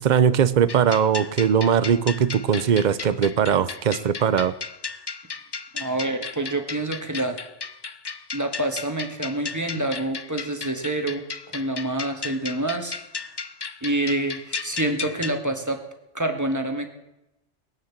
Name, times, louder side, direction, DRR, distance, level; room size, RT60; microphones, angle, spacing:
voice 1, 0.0-4.5, right 8 dB, 45° right, 14 dB, 0.8 m, -20 dB
sound 1, 0.7-15.4, left 5 dB, 35° left, 0.4 m, -35 dB
voice 2, 5.7-7.4 8.3-11.2 11.5-12.9 13.8-15.8 16.1-16.9, right 1 dB, 15° right, 5 dB, 1.7 m, -27 dB
19.0 x 9.2 x 7.3 m, 0.90 s
omnidirectional pair, 1.2 m